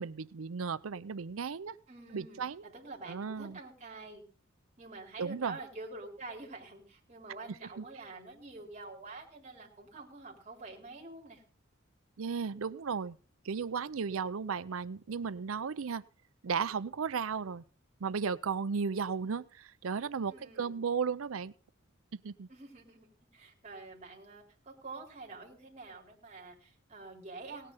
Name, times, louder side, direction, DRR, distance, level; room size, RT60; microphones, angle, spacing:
voice 1, 0.0-1.8 2.1-2.6 3.1-3.6 5.2-5.6 7.8-7.9 12.2-13.2 13.4-16.0 16.4-17.6 18.0-21.5 22.1-22.5, right 5 dB, 80° right, 16 dB, 0.5 m, -35 dB
voice 2, 1.9-4.2 4.8-11.4 20.3-20.8 22.5-27.7, right 3 dB, 35° right, -1 dB, 4.3 m, -47 dB
18.0 x 10.0 x 4.1 m, 0.39 s
head